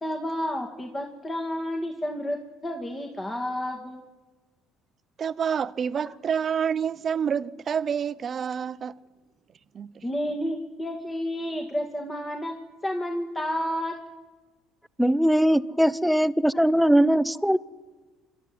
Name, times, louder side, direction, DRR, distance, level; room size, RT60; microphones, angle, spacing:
voice 1, 0.0-4.0 10.0-13.9 16.5-16.6 17.1-17.2, equal, 25° left, 2.4 m, -31 dB
voice 2, 5.2-8.9 9.7-10.0, right 7 dB, 45° right, 0.7 m, -28 dB
voice 3, 15.0-17.6, equal, ahead, 0.7 m, -20 dB
27.0 x 12.5 x 9.5 m
supercardioid pair, 75°, 0 cm